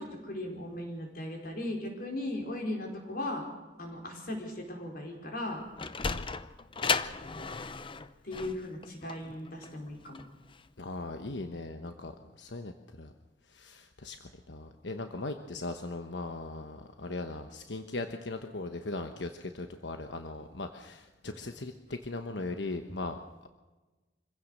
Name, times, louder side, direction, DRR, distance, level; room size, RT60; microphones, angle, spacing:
voice 1, 0.0-3.4 3.8-5.6 8.2-10.2, left 1 dB, 55° left, 2 dB, 4.9 m, -37 dB
Sliding door, 5.5-10.7, left 5 dB, 30° left, 0.7 m, -35 dB
voice 2, 10.8-13.1 13.5-23.5, left 2 dB, 90° left, 7 dB, 1.1 m, -39 dB
25.5 x 16.0 x 6.6 m, 1.2 s
head